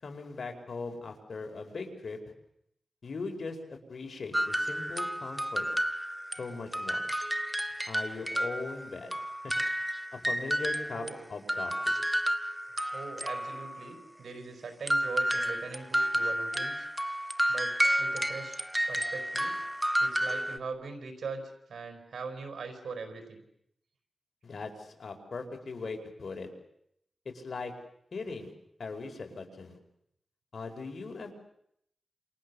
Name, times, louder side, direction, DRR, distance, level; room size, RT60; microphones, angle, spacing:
voice 1, 0.0-2.2 3.0-5.7 6.3-7.0 7.9-9.2 9.4-9.5 10.1-12.0 24.4-26.5 27.3-27.7 28.1-28.5 28.8-29.8 30.5-31.3, left 4 dB, 70° left, 4 dB, 5.1 m, -39 dB
sound 1, 4.3-6.5 6.7-11.1 11.5-13.9 14.9-20.6, equal, 10° right, 1.6 m, -31 dB
voice 2, 10.9-11.3 12.9-16.9 17.5-18.6 18.9-19.5 20.0-23.4, right 4 dB, 90° right, 6 dB, 4.8 m, -41 dB
28.5 x 28.0 x 7.1 m, 0.76 s
cardioid pair, 60°, 0 cm